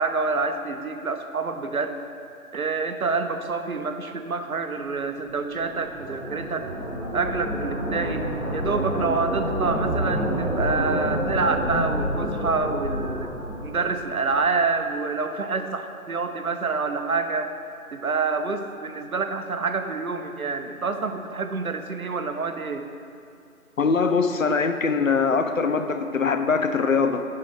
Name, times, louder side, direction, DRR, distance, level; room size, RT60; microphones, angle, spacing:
voice 1, 0.0-2.0 2.5-6.7 7.1-13.3 13.6-17.5 17.9-22.9, right 4 dB, 75° right, 7 dB, 0.7 m, -27 dB
sound 1, 5.3-14.5, equal, 5° left, 1.5 m, -28 dB
voice 2, 23.8-27.3, left 5 dB, 65° left, 8 dB, 0.5 m, -22 dB
5.5 x 5.2 x 5.9 m, 2.4 s
figure-of-eight pair, 160°, 44 cm